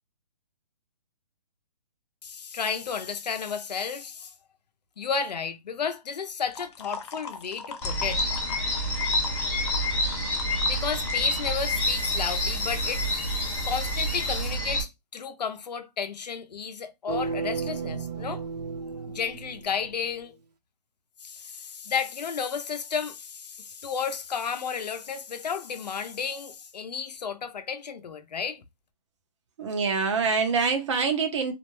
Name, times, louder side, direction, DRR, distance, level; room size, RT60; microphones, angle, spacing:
voice 1, 2.2-4.3 5.0-8.2 10.7-18.4 19.1-20.3 21.2-28.6, left 6 dB, 85° left, 0.6 m, -32 dB
sound 1, 6.4-11.5, left 5 dB, 45° left, 0.5 m, -41 dB
sound 2, 7.8-14.8, left 1 dB, 10° left, 0.8 m, -27 dB
sound 3, 17.1-20.1, right 5 dB, 85° right, 0.8 m, -33 dB
voice 2, 29.6-31.5, right 5 dB, 45° right, 0.7 m, -25 dB
2.5 x 2.0 x 3.0 m
hypercardioid pair, 155°, 20 cm